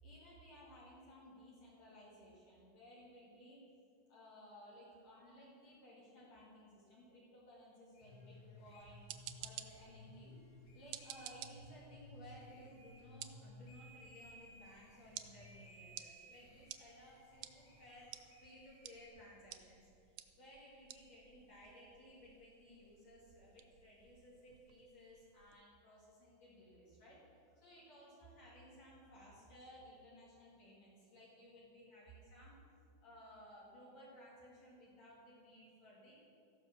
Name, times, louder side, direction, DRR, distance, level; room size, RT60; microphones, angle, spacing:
voice 1, 0.0-3.6 4.1-9.0 9.4-10.4 10.7-27.2 27.5-32.6 33.0-36.1, equal, 65° left, -7 dB, 3.5 m, -59 dB
sound 1, 7.9-19.1, left 1 dB, 85° left, 3.3 m, -58 dB
sound 2, 8.8-25.6, right 12 dB, 85° right, 1.9 m, -55 dB
13.5 x 5.9 x 6.8 m, 2.4 s
omnidirectional pair, 3.3 m